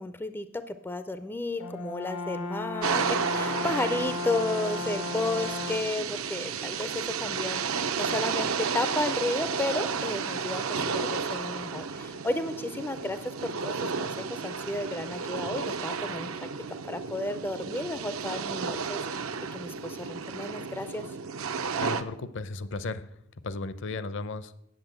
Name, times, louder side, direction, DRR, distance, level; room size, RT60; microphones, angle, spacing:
voice 1, 0.0-16.5 16.8-21.0, left 2 dB, 10° left, 11 dB, 0.4 m, -33 dB
Brass instrument, 1.6-6.0, left 3 dB, 90° left, 0.9 m, -35 dB
sound 1, 2.8-22.0, right 5 dB, 75° right, 0.7 m, -32 dB
voice 2, 21.8-23.1 23.4-24.5, left 3 dB, 60° left, 14 dB, 0.7 m, -35 dB
8.8 x 8.2 x 7.7 m, 0.80 s
head